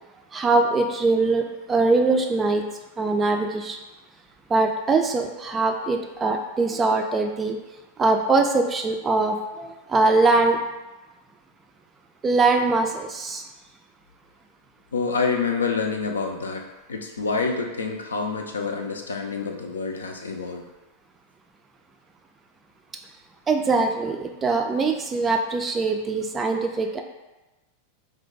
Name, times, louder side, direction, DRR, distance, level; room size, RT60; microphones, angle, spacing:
voice 1, 0.3-2.6 3.0-3.8 4.5-7.6 8.0-10.6 12.2-13.4 23.5-27.0, right 3 dB, 20° right, 3 dB, 0.3 m, -22 dB
voice 2, 14.9-16.6 16.9-20.6, left 4 dB, 70° left, 3 dB, 0.4 m, -27 dB
2.5 x 2.1 x 3.8 m, 1.1 s
figure-of-eight pair, 90°, 0 cm